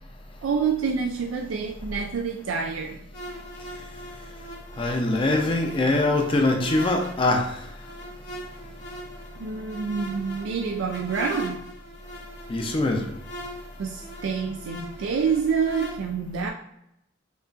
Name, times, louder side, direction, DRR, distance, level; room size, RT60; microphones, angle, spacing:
voice 1, 0.4-3.0 9.4-11.6 13.8-16.5, right 5 dB, 90° right, 3 dB, 0.4 m, -27 dB
sound 1, 3.1-15.9, equal, 60° left, 1.1 m, -40 dB
voice 2, 4.8-7.5 12.5-13.1, left 2 dB, 25° left, 2 dB, 0.5 m, -23 dB
5.4 x 2.4 x 2.4 m, 0.80 s
head